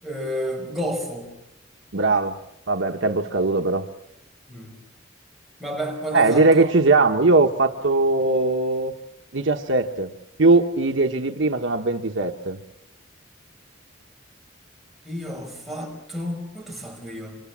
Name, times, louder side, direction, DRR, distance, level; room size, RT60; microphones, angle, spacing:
voice 1, 0.0-1.3 4.5-4.7 5.6-6.7 15.0-17.4, equal, ahead, -1 dB, 5.6 m, -31 dB
voice 2, 1.9-2.3 2.7-3.8 6.1-8.9 9.3-10.1 10.4-12.6, right 3 dB, 80° right, 3 dB, 1.2 m, -20 dB
27.0 x 25.5 x 7.5 m, 0.83 s
head